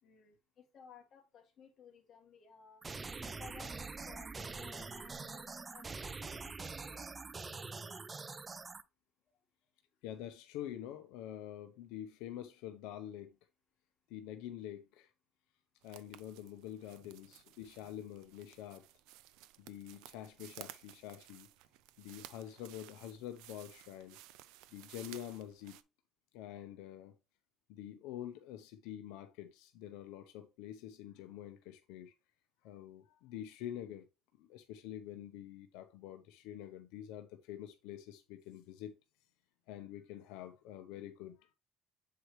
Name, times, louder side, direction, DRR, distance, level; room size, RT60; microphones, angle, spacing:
voice 1, 0.0-2.8 3.2-7.1 16.9-17.1, left 6 dB, 40° left, 2.1 m, -58 dB
sound 1, 2.8-8.8, right 4 dB, 20° right, 0.4 m, -44 dB
voice 2, 10.0-13.3 14.1-15.1 15.8-18.9 19.6-21.5 22.0-24.2 24.7-25.8 26.3-27.1 27.7-32.1 32.6-34.1 34.4-38.9 39.7-41.5, left 11 dB, 85° left, 0.8 m, -47 dB
sound 2, 15.8-25.8, right 15 dB, 80° right, 0.5 m, -56 dB
7.6 x 4.7 x 3.1 m
cardioid pair, 125°, 0 cm